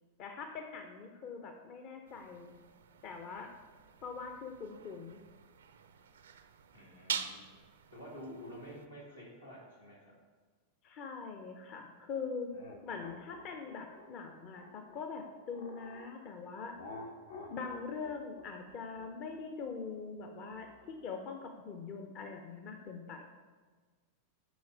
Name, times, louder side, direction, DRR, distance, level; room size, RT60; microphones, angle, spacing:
voice 1, 0.2-2.6 3.0-3.5 4.0-5.2 10.8-12.5 12.8-16.7 17.5-23.2, left 5 dB, 40° left, 4 dB, 0.6 m, -43 dB
sound 1, 2.1-8.9, right 7 dB, 65° right, 0.4 m, -45 dB
voice 2, 6.7-7.4 7.9-10.1, equal, 90° left, -6 dB, 2.2 m, -49 dB
sound 2, 12.5-16.1 16.7-21.2, left 2 dB, 65° left, 0.9 m, -51 dB
6.2 x 4.7 x 4.9 m, 1.4 s
figure-of-eight pair, 90°, 0 cm